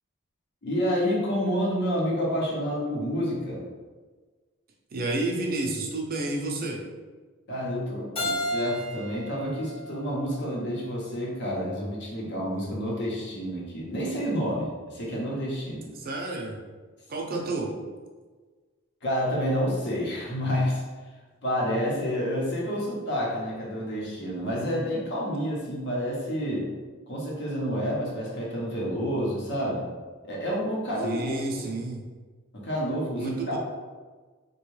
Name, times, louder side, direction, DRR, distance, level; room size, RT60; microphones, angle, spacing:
voice 1, 0.6-3.6 7.5-15.9 17.4-17.5 19.0-20.8 21.4-26.7 27.1-29.8 30.2-31.7 32.5-33.6, equal, 60° left, -3 dB, 0.8 m, -29 dB
voice 2, 4.9-6.8 15.9-16.6 17.1-17.7 31.0-32.0 33.2-33.6, right 2 dB, 45° right, 0 dB, 0.5 m, -30 dB
Keyboard (musical), 8.2-11.0, equal, 30° left, 0.8 m, -33 dB
3.4 x 2.3 x 3.1 m, 1.4 s
head